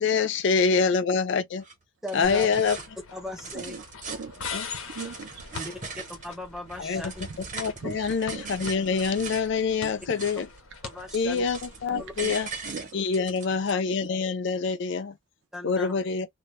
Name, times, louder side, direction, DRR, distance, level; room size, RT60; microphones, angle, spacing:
voice 1, 0.0-1.6 2.1-2.8 4.5-4.7 6.8-7.0 7.5-10.5 11.1-12.5 12.9-15.2 15.6-16.3, left 5 dB, 55° left, 0.3 m, -25 dB
sound 1, 1.6-1.7 2.1-2.9 3.3-4.4 4.8-6.3 6.7-9.5 9.9-10.6 10.9-11.8 12.2-13.7, right 4 dB, 35° right, 0.8 m, -40 dB
voice 2, 2.0-2.5 3.1-3.8 5.5-7.2 9.8-9.9 10.8-11.4 12.0-12.1 15.5-15.9, left 2 dB, ahead, 0.5 m, -38 dB
sound 2, 2.2-12.7, left 5 dB, 85° left, 0.9 m, -43 dB
voice 3, 3.5-5.6 7.8-8.8 10.1-10.2 11.9-12.4 12.6-13.2, right 5 dB, 55° right, 0.5 m, -41 dB
2.2 x 2.0 x 3.0 m
head